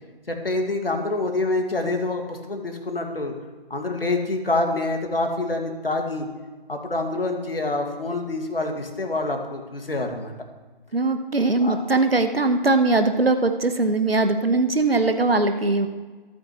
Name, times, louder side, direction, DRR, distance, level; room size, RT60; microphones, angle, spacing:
voice 1, 0.3-3.3 3.7-6.3 6.7-10.3 11.6-11.8, left 2 dB, 65° left, 3 dB, 2.2 m, -26 dB
voice 2, 10.9-15.9, right 3 dB, 70° right, 8 dB, 1.2 m, -21 dB
25.0 x 9.2 x 3.1 m, 1.3 s
figure-of-eight pair, 155°, 31 cm